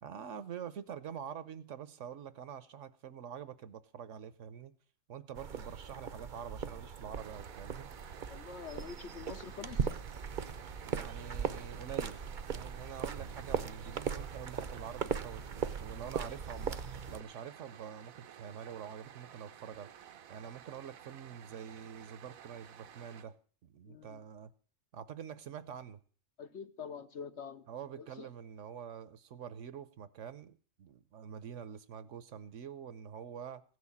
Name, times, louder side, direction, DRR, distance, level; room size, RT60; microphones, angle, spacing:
voice 1, 0.0-4.7 5.1-7.9 10.9-12.2 12.5-16.8 17.1-23.4 23.6-24.5 24.9-26.0 27.7-33.6, right 8 dB, 65° right, 1.1 m, -46 dB
sound 1, 5.3-17.2, right 6 dB, 45° right, 0.7 m, -39 dB
sound 2, 7.1-23.2, right 9 dB, 85° right, 1.2 m, -54 dB
voice 2, 8.3-9.9 23.9-24.2 26.4-27.6 28.0-28.3, left 6 dB, 60° left, 1.1 m, -46 dB
15.5 x 6.5 x 8.3 m
omnidirectional pair, 1.4 m